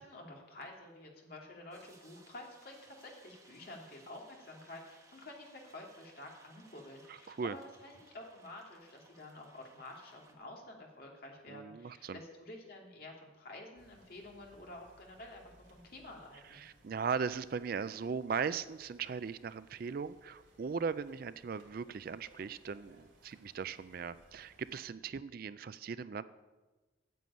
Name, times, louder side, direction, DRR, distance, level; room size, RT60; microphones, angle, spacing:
voice 1, 0.0-16.6, left 1 dB, 50° left, 0 dB, 2.3 m, -50 dB
sound 1, 1.7-10.3, right 3 dB, 15° right, 1.2 m, -63 dB
voice 2, 7.1-7.5 11.5-12.2 16.5-26.2, right 6 dB, 45° right, 15 dB, 0.3 m, -38 dB
sound 2, 13.8-24.9, right 1 dB, 75° right, 2.9 m, -65 dB
9.2 x 7.7 x 8.5 m, 1.2 s
head